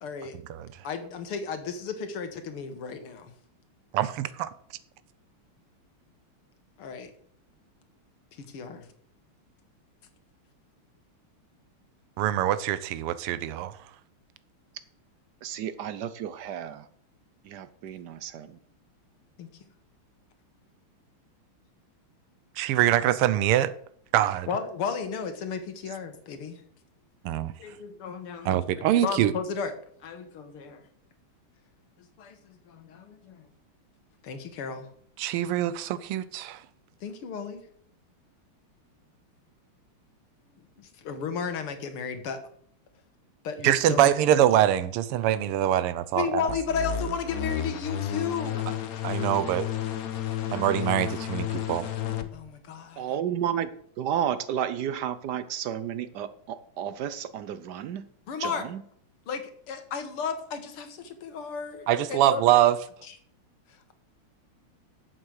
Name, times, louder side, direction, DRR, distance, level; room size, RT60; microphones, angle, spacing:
voice 1, 0.0-0.4 0.8-3.3 6.8-7.1 8.4-8.9 19.4-19.5 24.5-26.6 27.6-29.7 30.0-30.8 32.2-33.4 34.2-34.9 37.0-37.6 40.8-42.4 43.4-44.4 46.1-48.6 52.3-53.0 58.3-58.7 59.3-62.4, left 6 dB, 80° left, 2.3 m, -34 dB
voice 2, 3.9-4.5 12.2-13.7 22.6-23.7 24.1-24.5 27.3-27.5 28.5-29.3 35.2-36.6 43.6-46.5 49.0-49.7 50.5-51.9 61.9-62.8, right 12 dB, 90° right, 1.6 m, -24 dB
voice 3, 15.4-16.9 17.4-18.6 53.0-58.1 58.4-58.8, right 9 dB, 70° right, 1.0 m, -32 dB
sound 1, 46.5-52.3, left 10 dB, 55° left, 1.1 m, -32 dB
10.5 x 7.7 x 6.5 m
omnidirectional pair, 2.4 m